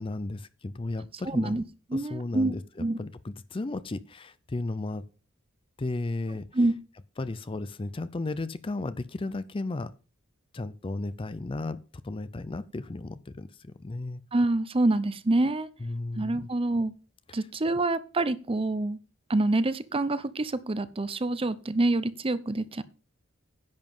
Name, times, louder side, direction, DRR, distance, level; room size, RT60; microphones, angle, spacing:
voice 1, 0.0-1.6 1.9-5.0 5.8-6.5 7.2-9.9 10.5-11.8 12.0-14.2 15.8-16.5 17.3-17.5, left 2 dB, 25° left, 0.4 m, -34 dB
voice 2, 1.3-1.6 1.9-2.5 2.8-3.0 6.5-6.7 14.3-15.7 16.1-16.9 17.3-19.0 19.3-22.8, right 2 dB, 25° right, 0.6 m, -26 dB
10.5 x 7.3 x 5.4 m
head